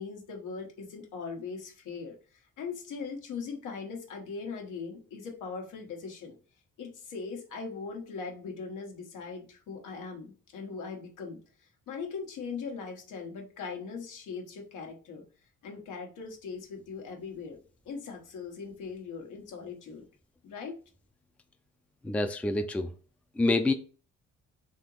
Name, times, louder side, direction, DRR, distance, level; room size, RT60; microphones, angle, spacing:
voice 1, 0.0-6.4 6.8-15.2 15.6-17.6 17.8-20.0 20.4-20.8, left 5 dB, 90° left, 1.1 m, -40 dB
voice 2, 22.0-22.9 23.4-23.7, left 2 dB, 5° left, 0.4 m, -27 dB
3.6 x 2.8 x 3.9 m
cardioid pair, 90°, 30 cm